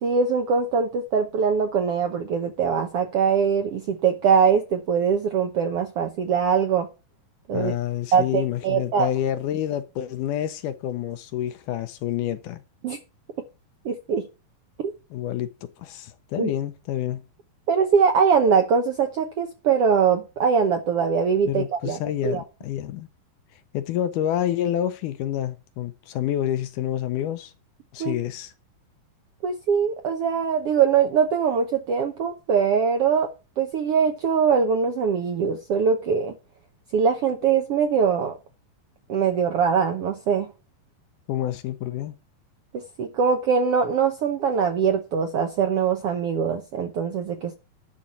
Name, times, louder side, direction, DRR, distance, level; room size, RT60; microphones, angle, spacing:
voice 1, 0.0-6.9 7.5-7.7 8.1-9.1 12.8-13.0 13.8-14.2 14.8-14.9 16.4-16.5 17.7-22.0 22.2-22.4 28.0-28.2 29.4-33.3 33.6-36.3 36.9-38.4 39.1-40.5 42.7-47.5, right 6 dB, 75° right, 1.4 m, -22 dB
voice 2, 7.5-12.6 15.1-17.2 21.5-23.1 23.7-27.5 27.9-28.5 41.3-42.1, left 11 dB, 80° left, 2.1 m, -28 dB
11.5 x 4.2 x 7.4 m
omnidirectional pair, 3.9 m